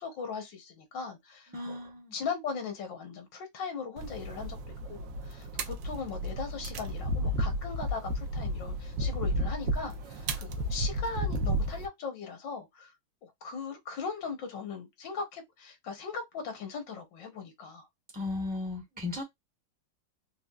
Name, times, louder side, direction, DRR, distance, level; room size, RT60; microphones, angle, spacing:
voice 1, 0.0-12.9 13.2-17.9, left 5 dB, 70° left, 1.7 m, -39 dB
voice 2, 1.5-2.1 18.1-19.2, left 3 dB, 5° right, 0.7 m, -35 dB
sound 1, 4.0-11.9, equal, 80° right, 1.3 m, -32 dB
4.2 x 2.3 x 2.3 m
omnidirectional pair, 2.0 m